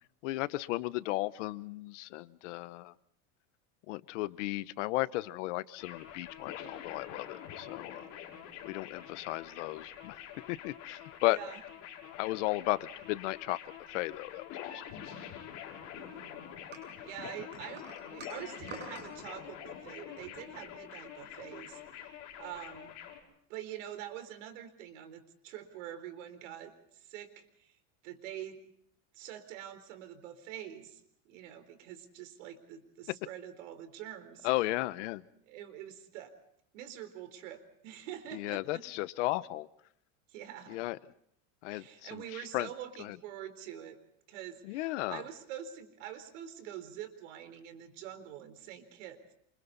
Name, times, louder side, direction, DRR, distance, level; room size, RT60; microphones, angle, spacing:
voice 1, 0.2-2.9 3.9-8.1 8.6-10.2 10.5-11.4 12.1-13.6 13.9-14.7 34.4-35.2 38.3-39.7 40.7-41.0 41.6-42.7 43.0-43.2 44.6-45.2, left 19 dB, 70° left, 16 dB, 1.1 m, -34 dB
sound 1, 5.8-23.2, left 9 dB, 45° left, 5.6 m, -46 dB
voice 2, 11.2-11.6 15.9-16.5 17.0-23.0 23.5-27.7 28.0-28.6 29.1-34.5 35.5-36.3 36.7-38.8 40.3-40.8 41.7-44.0 44.3-49.3, right 10 dB, 75° right, 9 dB, 4.1 m, -45 dB
sound 2, 16.7-19.1, right 3 dB, 30° right, 7.4 m, -47 dB
28.5 x 27.0 x 4.1 m, 0.69 s
supercardioid pair, 155°, 38 cm